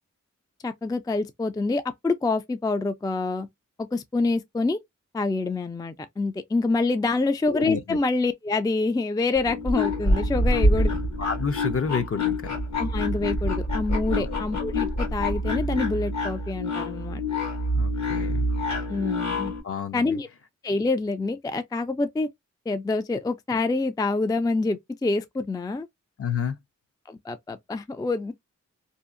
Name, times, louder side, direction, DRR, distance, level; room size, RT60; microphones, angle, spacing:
voice 1, 0.6-3.5 3.8-4.8 5.1-10.9 12.8-17.2 18.9-19.5 19.9-20.3 20.6-22.3 22.7-25.9 27.1-28.3, left 3 dB, 15° left, 0.3 m, -26 dB
voice 2, 7.5-8.0 10.5-10.6 11.2-12.6 14.2-14.4 17.7-18.5 19.6-20.2 26.2-26.6, left 6 dB, 50° left, 0.6 m, -30 dB
sound 1, 9.4-19.6, left 1 dB, 65° left, 1.5 m, -26 dB
2.7 x 2.4 x 2.4 m
wide cardioid pair, 55°, 30 cm